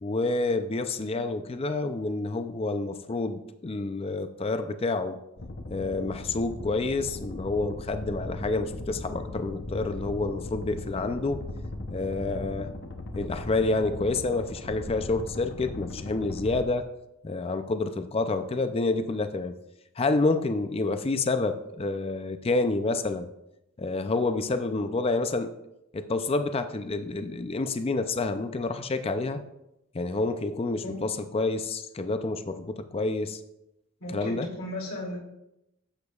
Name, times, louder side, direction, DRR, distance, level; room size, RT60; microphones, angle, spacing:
voice 1, 0.0-5.2 5.7-11.4 11.9-12.7 13.2-16.9 17.2-19.6 20.0-23.3 23.8-25.5 25.9-29.4 29.9-33.4 34.1-34.5, left 3 dB, 25° left, 9 dB, 0.4 m, -28 dB
sound 1, 5.4-16.6, left 2 dB, 50° left, 0.8 m, -38 dB
voice 2, 34.0-35.2, left 1 dB, 75° left, -2 dB, 2.9 m, -36 dB
11.5 x 8.2 x 2.4 m, 0.86 s
head